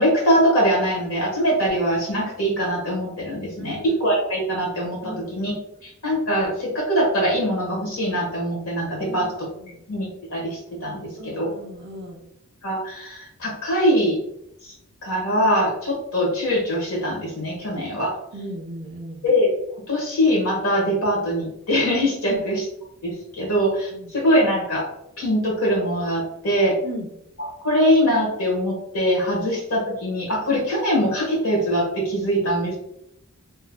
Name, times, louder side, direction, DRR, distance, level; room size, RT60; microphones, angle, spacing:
voice 1, 0.0-5.5 5.8-9.3 9.9-11.5 12.6-14.2 14.6-14.7 15.0-18.1 19.2-19.5 19.9-22.6 23.0-24.9 25.2-26.8 27.4-32.8, equal, 70° left, -2 dB, 1.4 m, -22 dB
voice 2, 3.6-4.0 5.0-5.2 9.0-9.8 11.2-12.2 18.3-19.3 22.2-22.4 23.9-24.1 26.8-27.1, equal, 45° right, 0 dB, 0.8 m, -37 dB
3.7 x 3.1 x 2.2 m, 0.79 s
head